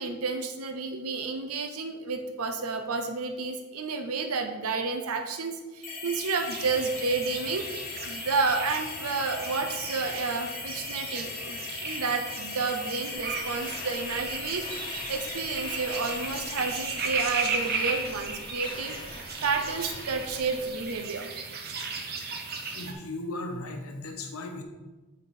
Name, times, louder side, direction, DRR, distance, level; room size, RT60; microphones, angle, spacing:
voice 1, 0.0-7.7 8.1-21.3, right 4 dB, 85° right, 6 dB, 0.7 m, -31 dB
sound 1, 5.8-17.2, left 4 dB, 40° left, 1.5 m, -38 dB
sound 2, 6.5-22.9, right 4 dB, 45° right, 0.8 m, -36 dB
sound 3, 13.1-21.0, left 3 dB, 20° left, 0.5 m, -45 dB
voice 2, 22.7-24.6, left 2 dB, 80° left, 3 dB, 0.9 m, -36 dB
7.9 x 4.2 x 4.3 m, 1.2 s
head